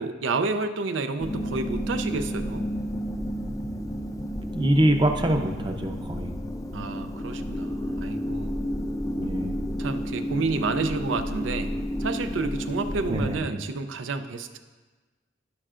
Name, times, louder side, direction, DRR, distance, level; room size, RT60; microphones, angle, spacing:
voice 1, 0.0-2.6 6.7-8.9 9.8-11.7 12.0-14.6, right 3 dB, 85° right, 9 dB, 0.5 m, -30 dB
sound 1, 1.2-13.4, equal, 20° left, 0.4 m, -31 dB
voice 2, 4.5-6.3 9.2-9.6 13.1-13.4, right 1 dB, 25° right, 4 dB, 0.6 m, -24 dB
15.0 x 5.5 x 2.5 m, 1.3 s
head